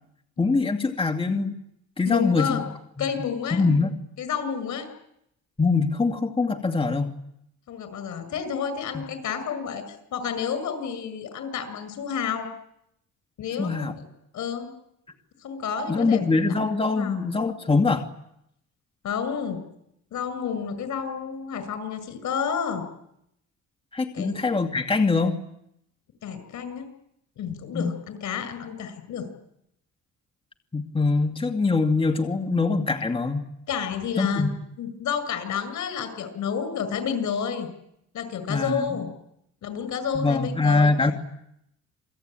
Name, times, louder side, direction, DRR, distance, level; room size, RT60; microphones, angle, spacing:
voice 1, 0.4-1.5 2.0-2.6 3.0-3.1 3.5-3.9 5.6-7.1 8.9-9.0 13.6-13.9 15.9-18.1 23.9-25.4 27.7-27.9 30.7-33.5 34.2-34.5 38.5-38.9 40.1-41.1, left 3 dB, 20° left, 4 dB, 2.2 m, -23 dB
voice 2, 2.0-2.6 3.0-3.6 4.2-4.9 7.7-9.8 10.1-12.5 13.4-13.9 14.3-14.7 15.4-16.2 16.9-17.2 19.0-19.6 20.1-22.8 24.1-24.4 26.2-26.8 27.4-29.3 33.7-34.5 34.8-37.7 38.1-39.1 39.6-41.1, left 7 dB, 75° left, 10 dB, 6.3 m, -30 dB
28.0 x 21.0 x 9.0 m, 0.79 s
cardioid pair, 90°, 30 cm